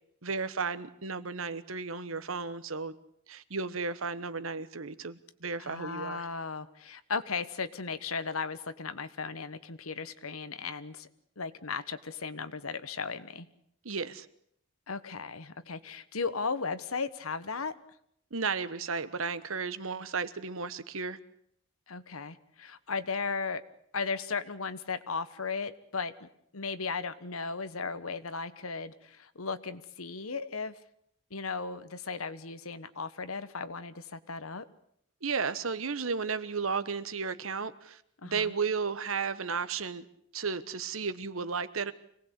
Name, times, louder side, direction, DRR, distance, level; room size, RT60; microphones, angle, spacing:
voice 1, 0.2-2.9 3.3-6.3 13.8-14.3 18.3-21.2 35.2-40.0 40.3-41.9, right 5 dB, 70° right, 14 dB, 1.2 m, -34 dB
voice 2, 5.6-11.1 11.4-13.5 14.9-17.7 21.9-23.6 23.9-26.3 26.5-30.7 31.3-34.6 38.2-38.5, left 4 dB, 90° left, 13 dB, 1.3 m, -36 dB
25.5 x 18.5 x 8.3 m, 0.70 s
head